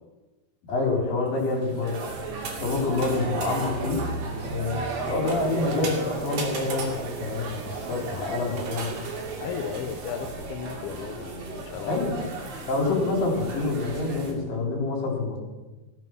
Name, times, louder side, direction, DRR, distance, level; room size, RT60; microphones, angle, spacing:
voice 1, 0.7-2.0 2.6-4.0 4.5-9.0 11.9-12.2 12.7-15.4, left 3 dB, 60° left, 0 dB, 5.1 m, -27 dB
sound 1, 1.4-14.3, right 3 dB, 65° right, 4.0 m, -34 dB
sound 2, 5.3-10.3, right 4 dB, 80° right, 3.7 m, -40 dB
voice 2, 9.4-12.3, left 8 dB, 85° left, 7 dB, 2.7 m, -35 dB
16.0 x 9.1 x 6.3 m, 1.2 s
omnidirectional pair, 4.5 m